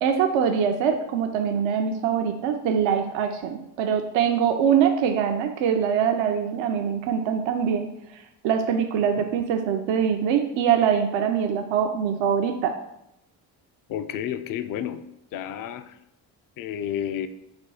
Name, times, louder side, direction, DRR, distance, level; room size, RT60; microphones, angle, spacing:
voice 1, 0.0-12.7, right 7 dB, 70° right, 5 dB, 0.6 m, -23 dB
voice 2, 13.9-15.0 15.3-16.0 16.6-17.3, left 10 dB, 45° left, 10 dB, 0.4 m, -30 dB
4.2 x 2.2 x 4.7 m, 0.83 s
supercardioid pair, 70°, 47 cm